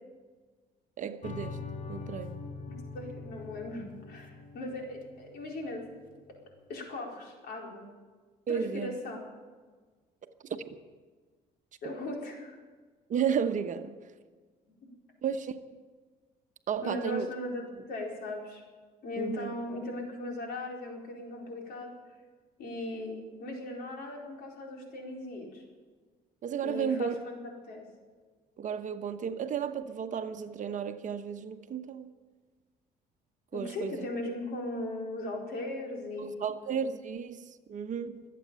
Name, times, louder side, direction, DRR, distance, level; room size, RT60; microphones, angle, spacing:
voice 1, 1.0-1.6 1.9-2.4 8.5-8.9 10.2-10.8 13.1-13.9 15.2-15.5 16.7-17.3 19.2-19.5 26.4-27.1 28.6-32.1 33.5-34.1 36.2-38.2, right 7 dB, 50° right, 1.0 m, -33 dB
sound 1, 1.2-6.4, left 4 dB, 55° left, 1.8 m, -43 dB
voice 2, 2.7-5.8 6.7-7.8 8.5-9.2 11.8-12.6 16.8-18.6 19.0-21.9 22.6-25.6 26.6-27.4 27.6-27.8 33.5-36.5, left 2 dB, 70° left, 4.4 m, -38 dB
23.5 x 8.6 x 7.0 m
cardioid pair, 110°, 17 cm